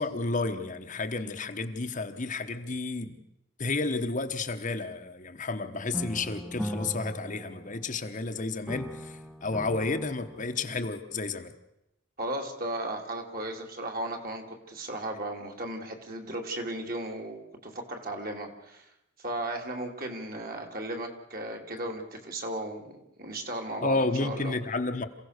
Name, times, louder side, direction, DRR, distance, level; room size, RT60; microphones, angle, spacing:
voice 1, 0.0-3.2 3.6-11.5 23.8-25.0, left 3 dB, 35° left, 6 dB, 1.1 m, -31 dB
sound 1, 5.9-8.3 8.7-10.9, equal, ahead, 0.8 m, -39 dB
voice 2, 12.2-18.9 19.2-24.6, right 1 dB, 45° right, 2 dB, 2.9 m, -36 dB
27.5 x 16.0 x 6.6 m, 0.88 s
head